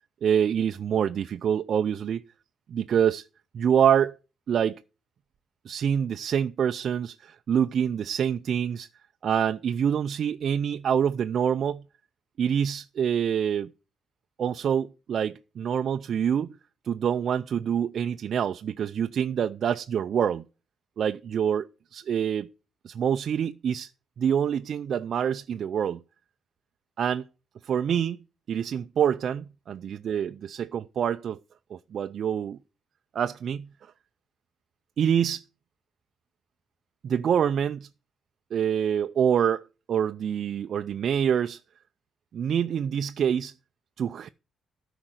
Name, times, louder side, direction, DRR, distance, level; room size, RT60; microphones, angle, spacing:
voice 1, 0.2-2.2 2.7-3.3 3.5-4.2 4.5-4.8 5.7-8.9 9.2-11.8 12.4-13.7 14.4-16.6 16.8-20.4 21.0-21.7 21.9-22.5 22.8-23.9 24.2-26.0 27.0-27.2 27.6-28.2 28.5-31.4 31.7-32.6 33.1-33.7 35.0-35.4 37.0-37.9 38.5-41.6 42.3-43.5 44.0-44.3, right 8 dB, 60° right, 0.5 m, -26 dB
13.0 x 5.0 x 7.8 m
cardioid pair, 90°, 0 cm